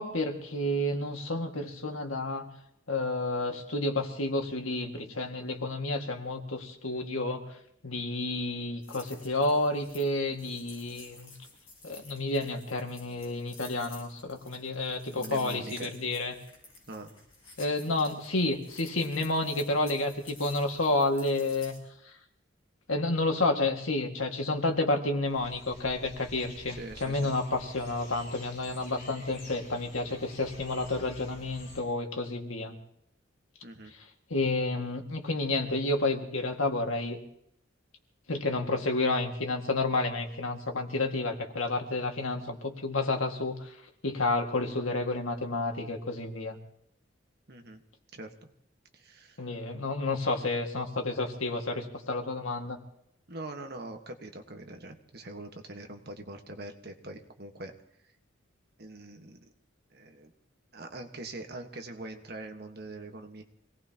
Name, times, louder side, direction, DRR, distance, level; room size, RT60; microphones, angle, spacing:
voice 1, 0.0-2.5 2.9-7.4 7.8-11.3 11.8-16.4 17.6-21.7 22.0-22.1 22.9-32.8 33.9-34.0 34.3-37.2 38.3-43.8 44.0-46.6 49.4-52.8, left 2 dB, 90° left, 3 dB, 2.0 m, -30 dB
sound 1, 8.8-21.8, left 3 dB, 30° left, 5.6 m, -52 dB
voice 2, 15.1-15.9 16.9-17.1 26.8-27.3 33.6-33.9 47.5-47.8 48.1-48.3 48.9-49.4 53.3-57.7 58.8-59.4 59.9-60.3 60.7-63.4, right 2 dB, 50° right, 4 dB, 1.5 m, -43 dB
sound 2, 25.3-31.8, left 2 dB, 45° left, 7.5 m, -49 dB
26.0 x 18.5 x 2.9 m, 0.72 s
head